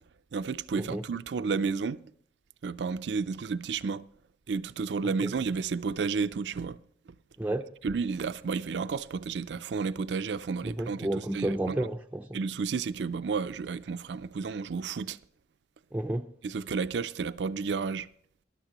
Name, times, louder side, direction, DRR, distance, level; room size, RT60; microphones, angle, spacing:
voice 1, 0.3-2.0 2.6-4.0 4.5-6.8 7.8-11.8 12.3-15.2 16.4-18.1, right 5 dB, 75° right, 0.4 m, -31 dB
voice 2, 5.0-5.3 7.4-7.7 10.6-12.4 15.9-16.3, right 1 dB, 10° right, 0.4 m, -32 dB
19.5 x 12.0 x 3.0 m
head